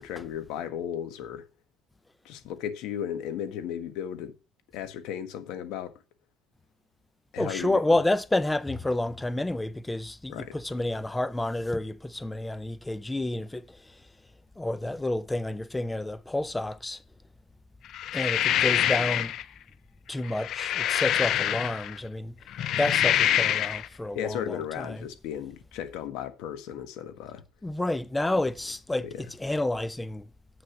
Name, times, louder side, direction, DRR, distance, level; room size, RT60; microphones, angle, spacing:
voice 1, 0.0-1.5 2.2-4.3 4.7-6.0 7.3-8.0 10.3-10.5 24.1-27.4 29.0-29.2, left 9 dB, 80° left, 1.5 m, -35 dB
voice 2, 7.4-14.0 14.6-17.0 18.1-19.3 20.1-22.3 22.8-25.1 27.6-30.3, left 2 dB, 10° left, 0.5 m, -29 dB
sound 1, 17.9-19.4 20.2-22.0 22.5-23.9, left 11 dB, 55° left, 0.5 m, -25 dB
7.8 x 6.8 x 5.9 m
cardioid pair, 140°, 0 cm